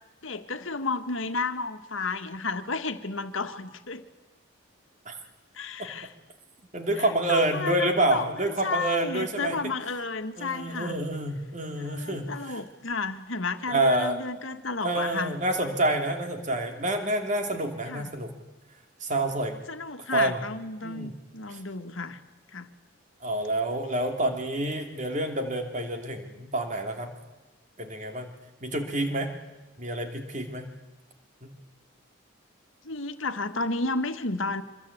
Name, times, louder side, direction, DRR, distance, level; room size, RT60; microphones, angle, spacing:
voice 1, 0.2-4.0 5.5-6.1 7.0-8.3 8.6-11.0 11.8-15.4 17.9-18.1 19.7-22.2 22.5-22.7 32.8-34.6, left 3 dB, 75° left, 8 dB, 1.7 m, -32 dB
voice 2, 6.7-9.5 10.4-12.6 13.7-14.2 14.8-18.4 19.0-19.6 20.1-20.4 20.8-21.1 23.2-27.1 27.8-28.3 28.6-29.3 29.8-30.7 31.4-31.5, right 1 dB, 35° right, 4 dB, 2.9 m, -28 dB
25.5 x 21.5 x 8.6 m, 1.2 s
head